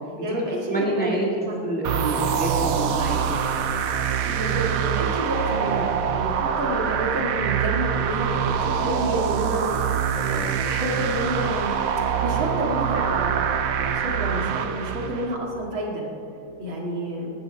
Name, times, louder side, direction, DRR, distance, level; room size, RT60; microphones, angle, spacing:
voice 1, 0.2-1.2 1.4-1.6 4.2-17.3, right 1 dB, 80° right, -2 dB, 3.1 m, -29 dB
voice 2, 0.7-1.3 1.6-3.4, right 1 dB, 5° left, -3 dB, 1.8 m, -27 dB
sound 1, 1.8-15.3, right 8 dB, 65° right, 0.9 m, -25 dB
17.0 x 11.5 x 4.5 m, 2.7 s
omnidirectional pair, 2.2 m